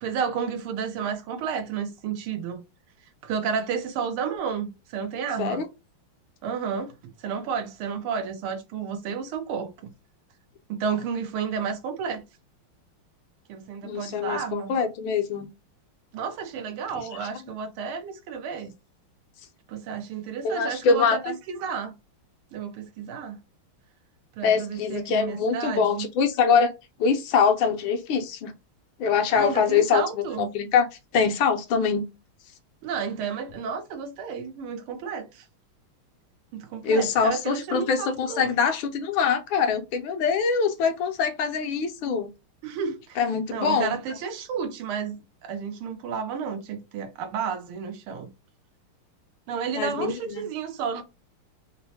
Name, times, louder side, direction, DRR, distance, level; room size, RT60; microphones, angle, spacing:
voice 1, 0.0-2.6 3.2-5.6 6.4-6.9 7.2-9.7 10.7-12.2 13.5-14.7 16.1-18.7 19.7-21.2 21.5-21.9 22.5-23.4 24.4-26.1 29.3-30.5 32.8-35.4 36.5-38.5 42.6-43.2 43.5-45.2 45.4-48.3 49.5-51.0, right 6 dB, 85° right, 1.6 m, -31 dB
voice 2, 13.8-15.5 17.2-17.3 20.4-21.4 24.4-26.7 27.0-28.5 29.0-30.9 31.1-32.0 36.8-42.3 43.2-44.0 49.8-50.4, left 6 dB, 75° left, 1.4 m, -24 dB
4.3 x 2.0 x 2.7 m
omnidirectional pair, 2.3 m